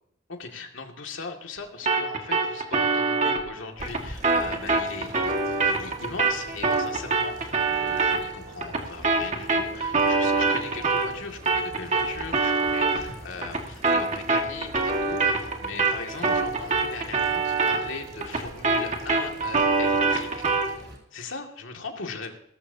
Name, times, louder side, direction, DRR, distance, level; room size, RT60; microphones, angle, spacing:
voice 1, 0.3-20.5 21.1-22.4, left 4 dB, 80° left, 2 dB, 2.2 m, -39 dB
sound 1, 1.9-11.2 11.5-20.8, right 3 dB, 35° right, 1.8 m, -25 dB
sound 2, 3.5-21.0, right 1 dB, 55° right, 4.9 m, -45 dB
18.0 x 14.0 x 2.8 m, 0.76 s
head